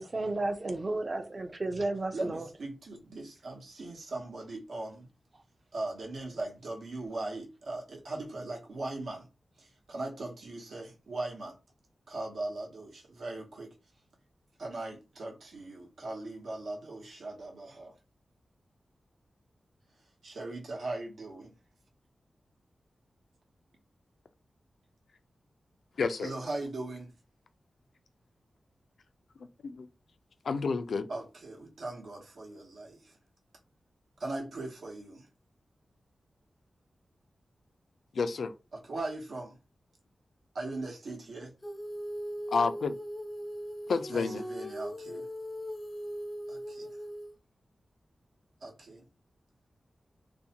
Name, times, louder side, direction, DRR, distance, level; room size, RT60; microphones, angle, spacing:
voice 1, 0.0-2.5, right 2 dB, 35° right, 0.5 m, -33 dB
voice 2, 2.1-5.1 5.7-9.3 9.6-11.6 12.1-13.7 14.6-17.9 20.2-21.5 26.2-27.1 31.1-33.2 34.2-35.3 38.7-39.6 40.5-41.5 44.1-45.3 46.5-46.9 48.6-49.0, right 2 dB, 80° right, 0.9 m, -39 dB
voice 3, 26.0-26.3 29.6-29.9 30.5-31.1 38.1-38.5 42.5-43.0 43.9-44.4, left 4 dB, 80° left, 0.3 m, -30 dB
Female singing, 41.6-47.3, equal, 20° left, 0.4 m, -39 dB
2.5 x 2.1 x 2.8 m
wide cardioid pair, 120°, 0 cm